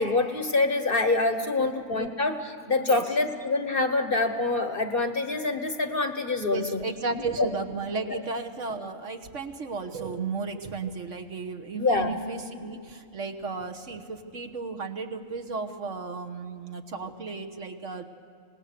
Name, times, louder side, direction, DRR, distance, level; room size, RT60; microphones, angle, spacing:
voice 1, 0.0-6.8 7.4-7.5 8.1-8.2 11.8-12.1, left 3 dB, 40° left, 7 dB, 1.2 m, -26 dB
voice 2, 6.5-18.0, right 4 dB, 55° right, 3 dB, 1.5 m, -34 dB
26.0 x 19.5 x 6.7 m, 2.6 s
omnidirectional pair, 1.5 m